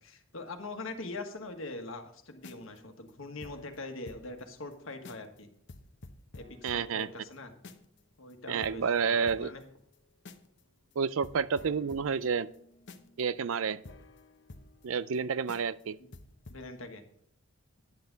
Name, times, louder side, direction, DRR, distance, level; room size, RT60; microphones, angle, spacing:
voice 1, 0.0-5.5 6.3-7.5 8.2-9.6 16.0-16.1 16.5-17.0, left 2 dB, 75° left, 5 dB, 1.4 m, -42 dB
sound 1, 2.3-4.4 4.7-4.8 5.0-5.4 5.7-8.0 8.3-8.4 8.6-10.6 10.9-11.0 11.2-15.2 15.5-15.8 16.1-16.7, left 2 dB, 55° left, 0.8 m, -51 dB
voice 2, 6.6-7.1 8.5-9.5 11.0-12.5 13.2-13.8 14.8-16.0, right 6 dB, 75° right, 17 dB, 0.4 m, -30 dB
10.5 x 8.2 x 3.9 m, 0.68 s
head